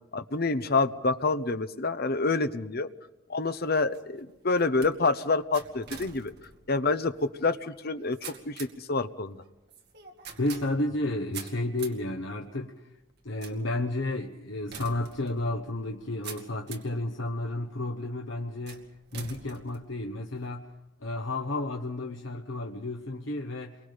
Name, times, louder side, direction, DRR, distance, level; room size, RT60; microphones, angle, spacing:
voice 1, 0.1-2.9 3.3-6.3 6.7-9.4, left 3 dB, 50° left, 1.0 m, -27 dB
sound 1, 3.4-17.0 17.6-18.0 18.7-20.5, right 6 dB, 55° right, 2.3 m, -47 dB
voice 2, 10.4-12.7 13.2-18.9 19.1-20.7 21.0-23.8, left 1 dB, 70° left, 1.2 m, -32 dB
29.0 x 23.0 x 5.2 m
head